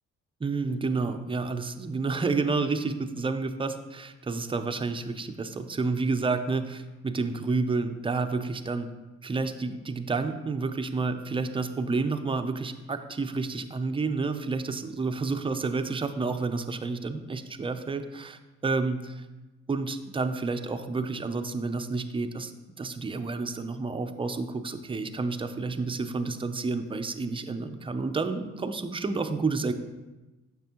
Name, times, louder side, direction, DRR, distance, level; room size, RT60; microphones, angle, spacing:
voice 1, 0.4-8.9 9.2-19.3 19.7-22.5 22.8-29.7, right 3 dB, 20° right, 8 dB, 0.4 m, -30 dB
7.1 x 6.0 x 2.9 m, 1.1 s
cardioid pair, 90°, 30 cm